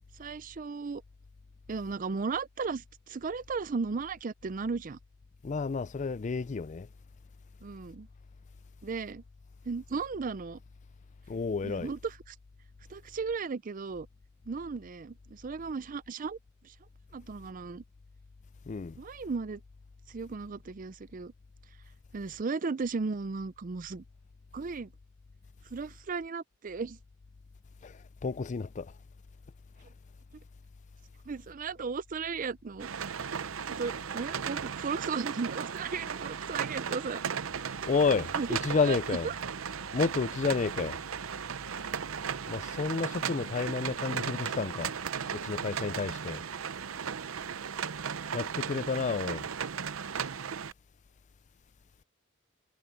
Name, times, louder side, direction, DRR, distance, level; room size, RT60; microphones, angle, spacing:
voice 1, 0.2-1.0 1.7-5.0 7.6-8.1 8.8-9.2 9.7-10.6 11.7-12.0 12.9-14.1 14.5-16.4 16.6-16.7 17.1-17.8 19.0-19.6 20.1-21.3 22.1-24.0 24.5-24.9 25.7-27.0 31.3-32.9 33.7-37.2 38.3-38.5 38.9-39.0, right 4 dB, 40° right, 0.5 m, -35 dB
voice 2, 5.4-6.9 11.3-11.9 18.7-19.0 27.8-28.9 37.9-39.3 39.9-41.0 42.5-44.9 45.3-46.4 48.3-49.5, left 4 dB, 35° left, 0.4 m, -31 dB
sound 1, 32.8-50.7, right 7 dB, 80° right, 0.7 m, -36 dB
head